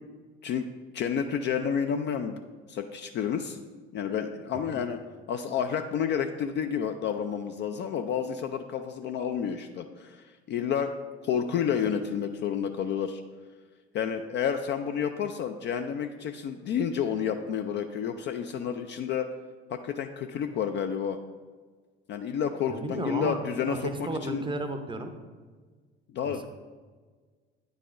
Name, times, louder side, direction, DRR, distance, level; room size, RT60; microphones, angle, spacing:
voice 1, 0.9-2.4 2.7-3.6 3.9-5.0 5.3-10.9 11.2-13.2 13.9-19.3 19.7-21.2 22.1-24.4 26.1-26.4, left 7 dB, 35° left, 7 dB, 0.4 m, -30 dB
voice 2, 22.7-25.1 26.3-26.4, right 1 dB, 15° right, 7 dB, 0.6 m, -34 dB
9.6 x 4.0 x 2.5 m, 1.4 s
figure-of-eight pair, 60°, 32 cm